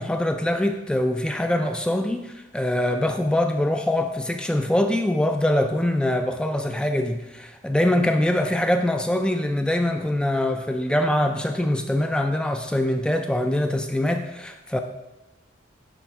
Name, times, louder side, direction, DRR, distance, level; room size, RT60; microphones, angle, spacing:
voice 1, 0.0-14.8, left 1 dB, 5° left, 5 dB, 0.3 m, -23 dB
10.0 x 3.5 x 4.7 m, 1.0 s
head